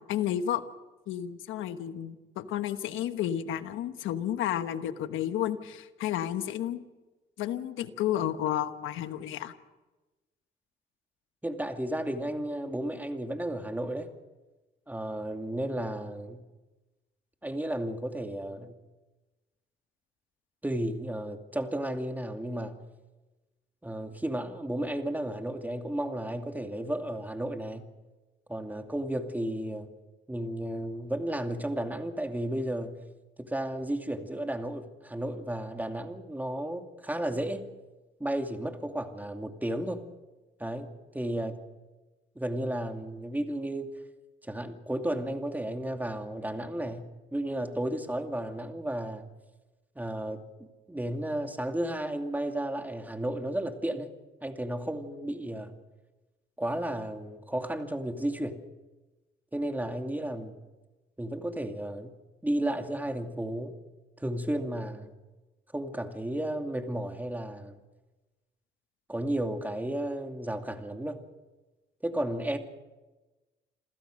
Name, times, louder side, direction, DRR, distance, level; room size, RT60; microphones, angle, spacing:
voice 1, 0.1-0.6 1.1-6.8 7.4-9.5, left 11 dB, 90° left, 10 dB, 1.2 m, -31 dB
voice 2, 11.4-14.1 14.9-16.4 17.4-18.7 20.6-22.8 23.8-27.9 28.5-29.9 30.3-33.0 33.4-37.6 38.2-40.0 40.6-41.6 42.4-43.9 44.4-49.3 50.0-50.5 50.9-54.1 54.4-55.8 56.6-58.6 59.5-60.6 61.2-62.1 62.4-63.8 64.2-65.1 65.7-67.8 69.1-71.2 72.0-72.6, right 1 dB, 10° right, 5 dB, 2.5 m, -33 dB
27.5 x 15.5 x 6.5 m, 1.1 s
cardioid pair, 90°, 20 cm